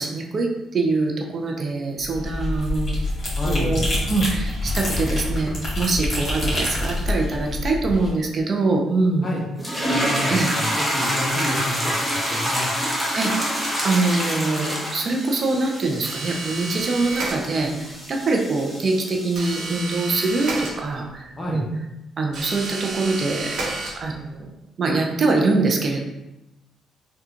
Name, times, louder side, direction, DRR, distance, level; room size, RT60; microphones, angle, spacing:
voice 1, 0.0-3.0 3.4-5.5 5.8-9.3 10.3-10.5 13.1-21.6 22.2-23.5 24.0-24.5 24.8-26.0, right 3 dB, 45° right, 1 dB, 0.5 m, -24 dB
sound 1, 2.0-8.1, left 2 dB, 50° left, 1.4 m, -26 dB
voice 2, 3.4-3.8 9.2-9.4 9.9-11.9 12.3-12.7 21.4-21.7, left 1 dB, 35° left, -2 dB, 0.9 m, -29 dB
sound 2, 9.6-19.8, equal, ahead, 0.9 m, -27 dB
sound 3, 16.0-17.8 19.3-21.2 22.3-24.4, right 3 dB, 75° right, 0.9 m, -31 dB
3.7 x 2.3 x 2.8 m, 0.93 s
cardioid pair, 90°, 0 cm